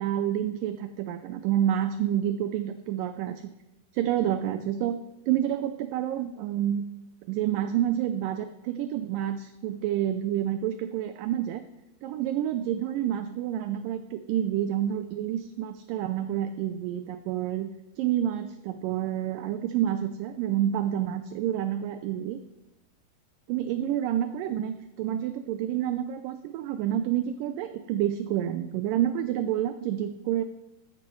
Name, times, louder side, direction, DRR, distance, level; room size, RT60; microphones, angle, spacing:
voice 1, 0.0-3.5 3.9-5.0 5.3-6.9 7.3-11.6 12.0-17.7 18.0-22.4 23.5-30.4, right 11 dB, 80° right, 9 dB, 2.1 m, -28 dB
14.0 x 11.5 x 3.1 m, 0.94 s
omnidirectional pair, 4.2 m